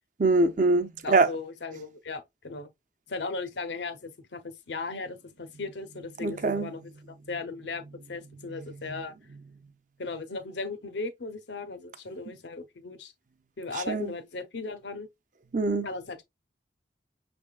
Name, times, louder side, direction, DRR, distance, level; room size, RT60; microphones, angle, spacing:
voice 1, 0.2-1.3 6.2-6.7 13.9-14.1 15.5-15.9, right 3 dB, 45° right, 0.6 m, -23 dB
voice 2, 1.0-2.7 3.1-6.9 7.3-9.1 10.0-13.1 13.6-15.1 15.8-16.2, left 3 dB, 75° left, 0.8 m, -37 dB
6.2 x 3.5 x 2.4 m
head